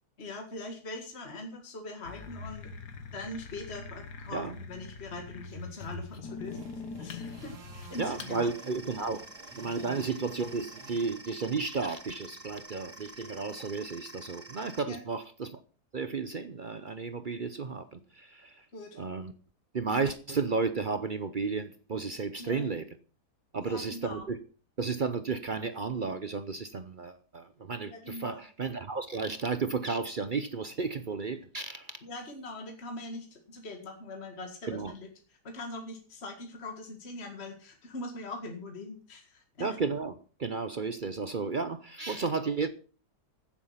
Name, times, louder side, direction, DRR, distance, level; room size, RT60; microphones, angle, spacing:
voice 1, 0.2-2.7 3.1-6.7 7.0-8.5 9.0-9.1 9.8-9.9 14.9-15.0 18.7-19.1 22.4-22.7 23.6-24.3 27.9-28.4 32.0-39.8, left 2 dB, 40° left, 2.1 m, -42 dB
sound 1, 2.1-8.4, left 4 dB, 90° left, 2.0 m, -43 dB
sound 2, 2.9-13.7, right 4 dB, 80° right, 2.4 m, -55 dB
sound 3, 7.9-14.8, right 2 dB, 10° right, 0.9 m, -48 dB
voice 2, 8.0-9.3 9.6-15.6 15.9-18.6 19.0-19.3 19.7-22.8 23.5-24.4 24.8-32.0 34.7-34.9 39.6-40.1 40.4-42.7, right 4 dB, 45° right, 0.7 m, -33 dB
15.5 x 7.3 x 5.7 m
omnidirectional pair, 1.7 m